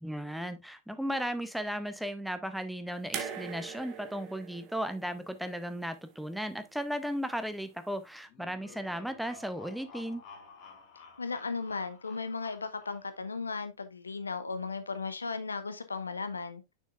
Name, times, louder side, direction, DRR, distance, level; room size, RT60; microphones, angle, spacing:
voice 1, 0.0-10.2, equal, ahead, 0.7 m, -35 dB
sound 1, 3.1-6.3 7.5-7.6, right 7 dB, 35° right, 1.3 m, -42 dB
sound 2, 8.3-13.4, left 4 dB, 35° left, 2.2 m, -53 dB
voice 2, 11.2-16.6, left 4 dB, 75° left, 0.7 m, -36 dB
6.5 x 6.3 x 2.4 m
figure-of-eight pair, 90°, 0 cm